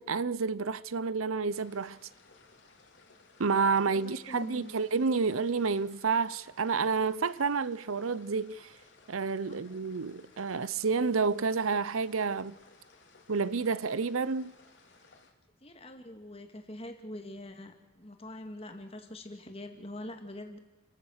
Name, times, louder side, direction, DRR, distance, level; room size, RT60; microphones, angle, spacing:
voice 1, 0.0-2.0 3.4-8.7 9.1-12.5 13.3-14.5, right 4 dB, 85° right, 0.7 m, -29 dB
sound 1, 1.5-15.3, left 3 dB, 60° left, 3.0 m, -60 dB
voice 2, 4.3-4.7 9.4-9.6 15.6-20.6, left 1 dB, 30° left, 2.2 m, -44 dB
29.5 x 15.5 x 6.6 m
head